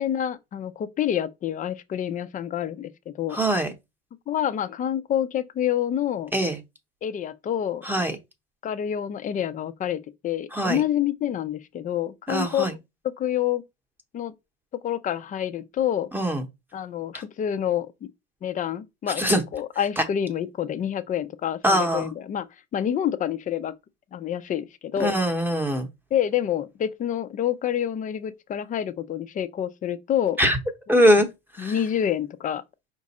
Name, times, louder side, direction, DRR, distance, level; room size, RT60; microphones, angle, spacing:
voice 1, 0.0-3.4 4.3-6.3 7.0-8.1 8.6-12.8 13.2-13.6 14.1-14.3 14.8-16.1 16.7-18.1 18.4-22.5 22.7-23.7 24.1-25.1 26.1-30.4 31.6-32.6, left 10 dB, 25° left, 0.4 m, -27 dB
voice 2, 3.3-3.7 6.3-6.6 7.8-8.2 10.5-10.8 12.3-12.7 16.1-16.4 17.1-17.2 19.2-19.4 20.0-20.1 21.6-22.1 25.0-25.9 30.4-30.6 30.9-31.3 31.5-31.8, equal, 5° right, 0.8 m, -22 dB
5.2 x 2.4 x 4.0 m
cardioid pair, 135°, 30 cm